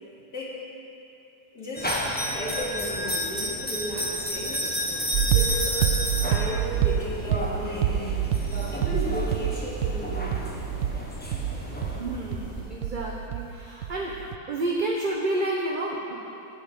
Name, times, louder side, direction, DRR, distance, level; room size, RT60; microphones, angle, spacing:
voice 1, 1.5-4.7 5.2-6.0 6.3-8.1 8.4-10.7, right 1 dB, 75° left, -8 dB, 3.1 m, -35 dB
sound 1, 1.8-12.0, equal, 5° left, 1.1 m, -31 dB
sound 2, 5.1-13.5 13.8-14.4, right 9 dB, 70° right, 0.9 m, -27 dB
sound 3, 6.0-12.6, right 1 dB, 40° left, 2.7 m, -40 dB
voice 2, 12.0-14.1 14.5-16.1, right 2 dB, 35° right, -2 dB, 1.0 m, -29 dB
14.5 x 4.9 x 9.1 m, 2.8 s
omnidirectional pair, 1.7 m